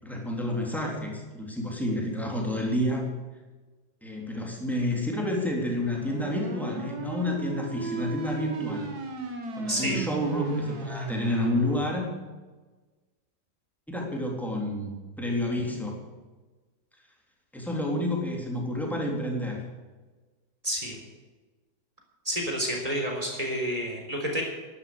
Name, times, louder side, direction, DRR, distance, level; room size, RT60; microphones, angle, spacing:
voice 1, 0.0-3.1 4.0-8.9 9.5-12.1 13.9-16.0 17.5-19.6, left 1 dB, ahead, -1 dB, 3.5 m, -29 dB
sound 1, 5.8-11.8, right 3 dB, 50° right, 2.4 m, -35 dB
voice 2, 9.7-10.0 20.6-21.0 22.2-24.4, equal, 15° right, 0 dB, 4.0 m, -29 dB
12.5 x 11.5 x 8.0 m, 1.3 s
omnidirectional pair, 2.2 m